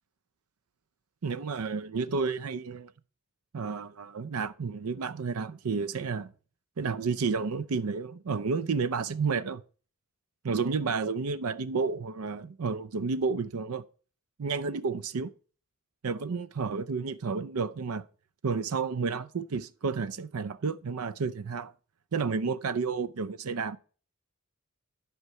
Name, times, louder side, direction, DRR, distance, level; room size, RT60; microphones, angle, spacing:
voice 1, 1.2-2.9 3.5-6.3 6.8-9.6 10.4-13.8 14.4-15.3 16.0-18.1 18.4-21.7 22.1-23.8, right 5 dB, 90° right, 0.5 m, -31 dB
11.0 x 4.5 x 6.5 m
head